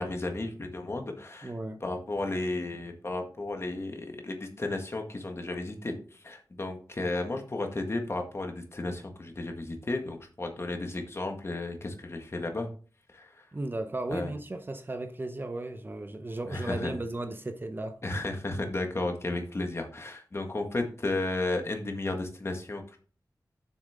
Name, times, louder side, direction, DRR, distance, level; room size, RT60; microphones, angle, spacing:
voice 1, 0.0-1.5 1.8-12.7 13.1-13.4 14.1-14.3 16.5-17.0 18.0-23.0, left 2 dB, 40° left, 1.7 m, -33 dB
voice 2, 1.4-1.8 13.5-18.0, right 2 dB, 30° right, 0.8 m, -35 dB
7.8 x 6.3 x 3.7 m
wide cardioid pair, 105°, 7 cm